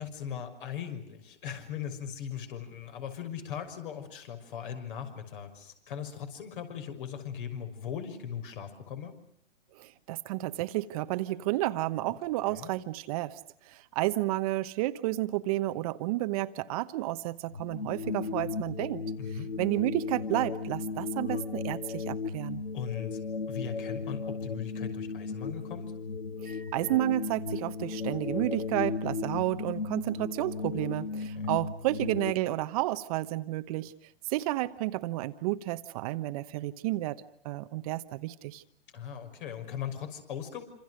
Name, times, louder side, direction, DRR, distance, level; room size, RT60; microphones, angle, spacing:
voice 1, 0.0-9.1 12.5-12.7 19.2-19.5 22.7-23.2 23.5-25.9 31.4-31.5 38.9-40.6, left 8 dB, 55° left, 7 dB, 6.0 m, -39 dB
voice 2, 9.8-13.4 13.7-19.0 19.6-22.6 26.4-33.9 34.3-38.6, right 17 dB, 35° right, 11 dB, 1.1 m, -31 dB
sound 1, 17.5-32.3, left 4 dB, 90° left, 2.1 m, -35 dB
27.0 x 27.0 x 6.5 m, 0.62 s
hypercardioid pair, 135°, 31 cm